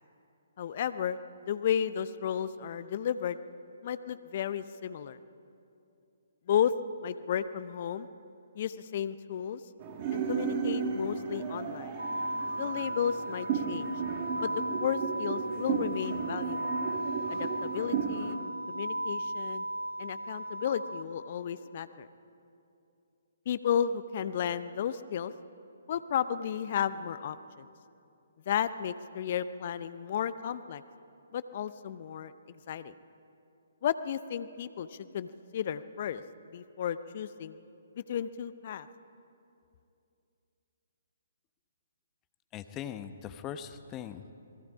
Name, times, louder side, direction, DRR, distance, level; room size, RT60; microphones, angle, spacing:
voice 1, 0.6-1.2 1.5-3.4 3.8-5.2 6.5-6.7 7.0-8.1 8.6-9.6 10.1-11.9 12.6-13.9 14.4-14.5 14.8-16.7 17.3-18.4 18.7-19.7 20.0-22.1 23.5-25.3 25.9-27.7 28.5-30.8 31.3-32.9 33.8-36.2 36.5-37.6 37.9-38.9, left 9 dB, 45° left, 14 dB, 0.7 m, -33 dB
sound 1, 9.8-18.3, right 6 dB, 30° right, 1.9 m, -34 dB
sound 2, 12.0-21.0, right 1 dB, 80° right, 4.0 m, -36 dB
voice 2, 42.5-44.3, left 9 dB, 20° left, 10 dB, 1.0 m, -40 dB
28.0 x 20.0 x 5.0 m, 2.6 s
figure-of-eight pair, 130°, 0 cm